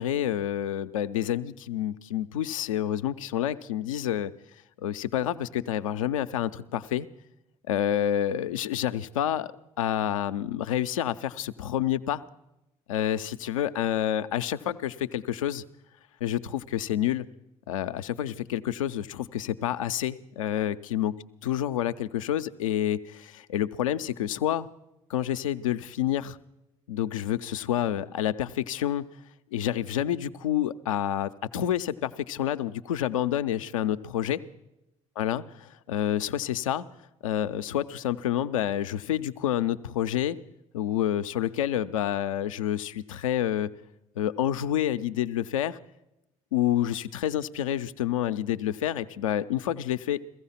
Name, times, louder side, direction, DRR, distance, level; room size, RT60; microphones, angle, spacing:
voice 1, 0.0-4.3 4.8-7.1 7.7-9.5 9.8-12.2 12.9-15.6 16.2-17.3 17.7-21.1 21.4-24.7 25.1-26.4 26.9-29.0 29.5-34.4 35.2-36.9 37.2-40.4 40.7-43.7 44.2-45.8 46.5-50.2, left 11 dB, 90° left, 11 dB, 0.5 m, -28 dB
16.0 x 15.0 x 5.7 m, 0.90 s
hypercardioid pair, 60°, 17 cm